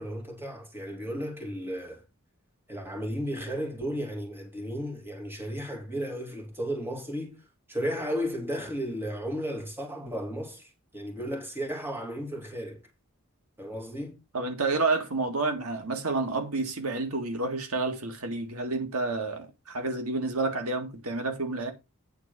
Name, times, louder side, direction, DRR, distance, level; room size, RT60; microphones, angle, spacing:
voice 1, 0.0-2.0 2.7-7.4 7.7-12.8 13.6-14.2, equal, 10° right, 2.4 m, -34 dB
voice 2, 14.3-21.7, right 3 dB, 75° right, 1.9 m, -29 dB
9.1 x 4.2 x 6.7 m
head